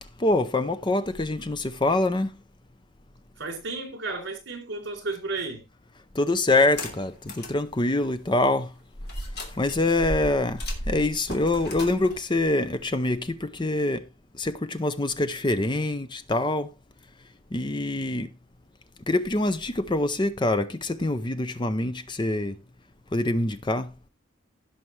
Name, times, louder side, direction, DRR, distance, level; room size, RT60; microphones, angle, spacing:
voice 1, 0.2-2.3 6.1-8.7 9.5-10.6 10.9-14.0 14.4-16.7 17.5-18.3 19.1-22.6 23.1-23.9, left 2 dB, 25° left, 0.6 m, -25 dB
voice 2, 3.4-5.7, right 3 dB, 60° right, 3.8 m, -33 dB
sound 1, 6.6-7.6 8.0-8.1 9.1-13.3, equal, 55° left, 3.0 m, -35 dB
17.0 x 5.8 x 3.3 m
head